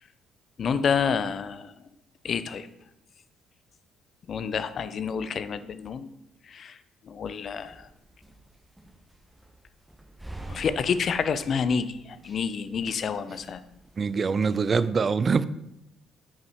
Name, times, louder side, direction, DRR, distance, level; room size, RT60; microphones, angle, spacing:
voice 1, 0.6-1.7 2.2-2.7 4.3-6.1 6.5-6.8 7.0-7.9 10.5-13.6, left 6 dB, 50° left, 12 dB, 0.4 m, -28 dB
sound 1, 7.4-14.9, right 2 dB, 10° right, 1.2 m, -47 dB
voice 2, 14.0-15.5, right 5 dB, 40° right, 16 dB, 0.3 m, -24 dB
5.5 x 4.9 x 4.8 m, 0.85 s
hypercardioid pair, 50°, 0 cm